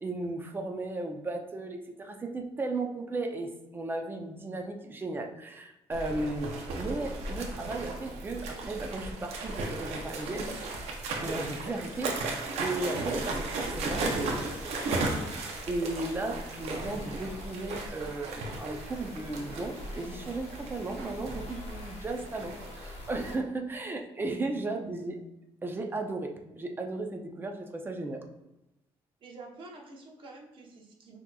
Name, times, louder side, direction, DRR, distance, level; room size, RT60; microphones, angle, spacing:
voice 1, 0.0-10.8 11.2-12.1 12.6-14.4 14.8-15.1 15.7-25.2 25.6-28.2, right 2 dB, 20° right, 3 dB, 0.5 m, -35 dB
sound 1, 5.9-23.3, right 2 dB, 90° right, 0.7 m, -36 dB
sound 2, 14.0-23.3, left 3 dB, 75° left, 0.7 m, -49 dB
voice 2, 29.2-31.2, right 3 dB, 50° right, 0 dB, 1.0 m, -48 dB
5.8 x 3.0 x 2.3 m, 0.93 s
cardioid pair, 125°, 11 cm